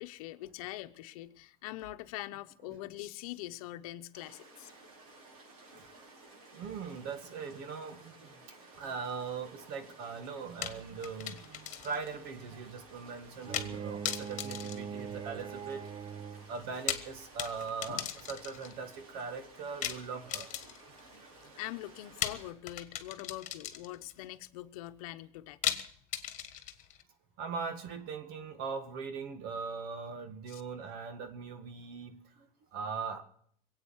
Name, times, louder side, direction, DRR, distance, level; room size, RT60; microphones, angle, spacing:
voice 1, 0.0-4.7 17.9-18.1 21.6-25.8 30.5-30.6, left 15 dB, 80° left, 0.9 m, -43 dB
sound 1, 4.1-22.5, right 2 dB, 85° right, 6.3 m, -55 dB
voice 2, 6.5-8.3 8.8-15.9 16.5-20.6 21.1-21.2 27.4-33.2, right 5 dB, 60° right, 2.0 m, -40 dB
sound 2, 10.6-12.1 12.4-12.5 13.5-13.8 14.0-15.6 16.6-18.8 19.8-21.0 22.2-24.1 25.6-27.0, left 11 dB, 40° left, 1.6 m, -38 dB
Bowed string instrument, 13.4-16.7, right 7 dB, 25° right, 0.7 m, -41 dB
21.5 x 8.7 x 7.2 m
supercardioid pair, 120°, 19 cm